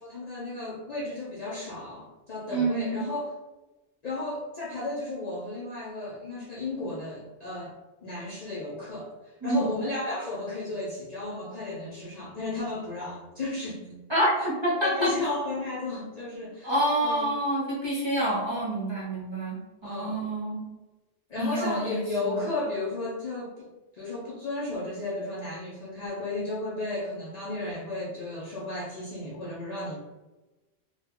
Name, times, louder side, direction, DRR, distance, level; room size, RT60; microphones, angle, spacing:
voice 1, 0.0-3.3 4.0-7.7 8.0-14.0 14.7-16.7 17.0-17.3 19.8-20.3 21.3-23.7 23.9-30.0, left 2 dB, 50° left, -6 dB, 0.5 m, -34 dB
voice 2, 2.5-3.0 9.4-9.8 14.1-15.1 16.6-20.6 21.4-22.0 22.3-22.4, right 1 dB, 30° right, -7 dB, 0.6 m, -27 dB
2.1 x 2.1 x 3.5 m, 1.1 s
omnidirectional pair, 1.1 m